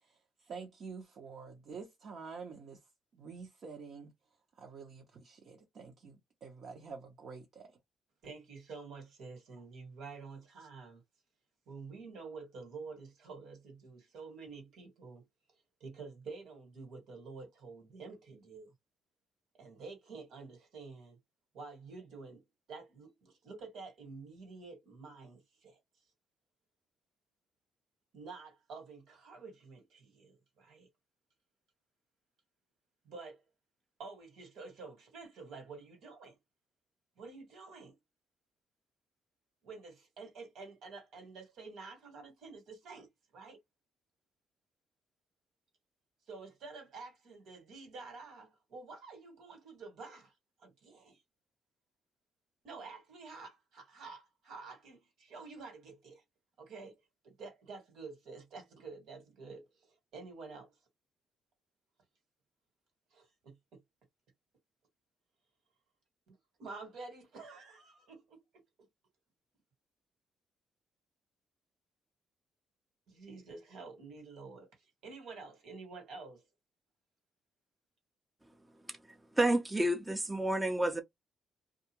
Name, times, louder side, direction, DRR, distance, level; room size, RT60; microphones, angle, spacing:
voice 1, 0.0-2.8 3.1-4.1 4.6-7.8, right 5 dB, 60° right, 0.8 m, -48 dB
voice 2, 8.2-11.0 11.7-15.3 15.5-18.7 19.6-21.2 21.5-25.8 28.1-30.9 33.0-33.4 34.0-36.4 37.2-38.0 39.6-43.6 46.3-50.3 50.6-51.2 52.6-56.2 56.6-60.8 63.1-63.8 66.3-68.9 73.1-76.4, right 4 dB, 75° right, 1.5 m, -49 dB
voice 3, 79.4-81.0, right 1 dB, 15° right, 0.5 m, -29 dB
2.4 x 2.4 x 2.9 m
cardioid pair, 90°, 0 cm